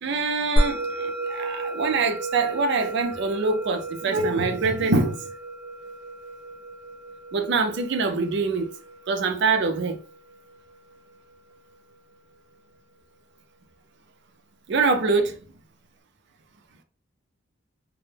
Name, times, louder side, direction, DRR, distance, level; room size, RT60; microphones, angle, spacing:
voice 1, 0.0-5.2 7.3-8.7 9.1-10.0 14.7-15.4, right 4 dB, 60° right, 0.5 m, -24 dB
Musical instrument, 0.6-11.2, right 1 dB, 25° left, 0.5 m, -32 dB
2.1 x 2.1 x 3.2 m
head